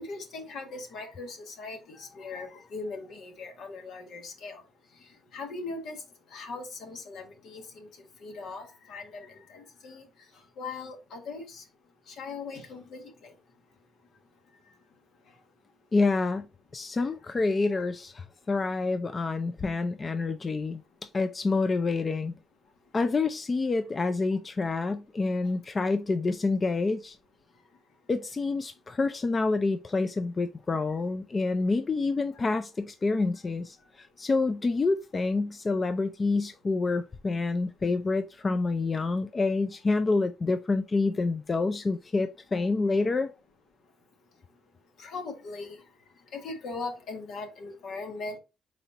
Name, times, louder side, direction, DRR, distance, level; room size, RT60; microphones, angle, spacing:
voice 1, 0.0-4.6 5.3-6.0 6.3-7.9 8.2-10.0 10.6-11.6 12.1-13.0 45.0-45.8 46.3-48.4, left 3 dB, 75° left, 1.4 m, -39 dB
voice 2, 15.9-16.5 16.7-22.3 22.9-27.2 28.1-43.3, left 3 dB, 30° left, 0.4 m, -28 dB
4.3 x 4.1 x 2.8 m
cardioid pair, 90°, 0 cm